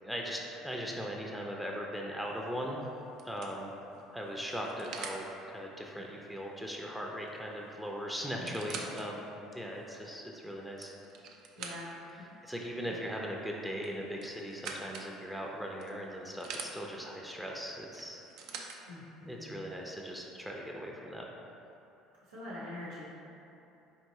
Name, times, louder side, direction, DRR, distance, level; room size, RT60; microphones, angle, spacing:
voice 1, 0.0-2.8 3.2-3.8 4.1-10.9 12.4-18.2 19.2-21.2, equal, ahead, -1 dB, 0.5 m, -39 dB
sound 1, 2.3-2.6 3.2-5.2 7.3-7.4 7.6-7.7 8.2-9.1 9.7-9.8 10.5-12.1 13.8-15.1 15.8-16.7 17.9-18.8 19.7-19.8, right 5 dB, 65° right, 0.4 m, -44 dB
voice 2, 8.4-8.8 11.6-11.9 12.9-13.0 18.9-19.5 22.3-23.0, left 1 dB, 90° right, -9 dB, 0.8 m, -45 dB
4.5 x 2.8 x 2.7 m, 2.9 s
hypercardioid pair, 65°, 0 cm